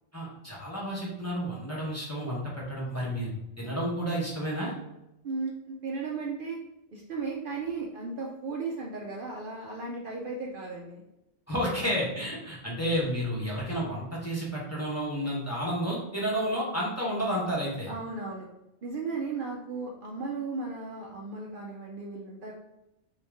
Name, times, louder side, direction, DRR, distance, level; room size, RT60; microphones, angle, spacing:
voice 1, 0.1-3.3 3.6-4.7 11.5-17.9, equal, 15° left, -6 dB, 0.9 m, -31 dB
voice 2, 5.2-6.6 6.9-11.0 11.7-12.0 17.9-18.5 18.8-22.5, right 4 dB, 55° right, -2 dB, 0.7 m, -35 dB
3.8 x 2.8 x 3.4 m, 0.89 s
omnidirectional pair, 1.2 m